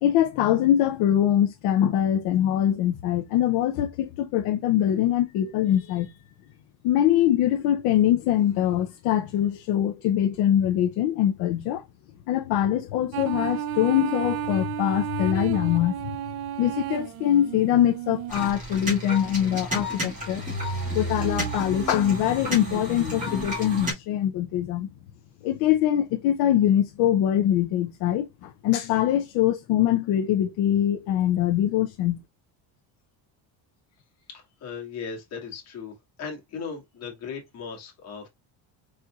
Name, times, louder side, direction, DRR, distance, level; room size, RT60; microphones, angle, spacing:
voice 1, 0.0-6.2 6.8-11.8 12.3-16.0 16.6-20.4 20.9-24.9 25.4-32.2, left 11 dB, 55° left, 0.6 m, -23 dB
sound 1, 13.1-18.3, right 10 dB, 60° right, 0.5 m, -32 dB
sound 2, 18.3-23.9, right 1 dB, 15° right, 2.1 m, -31 dB
voice 2, 34.3-35.9 36.2-38.3, left 6 dB, 35° left, 1.8 m, -37 dB
4.3 x 4.0 x 2.3 m
cardioid pair, 175°, 44 cm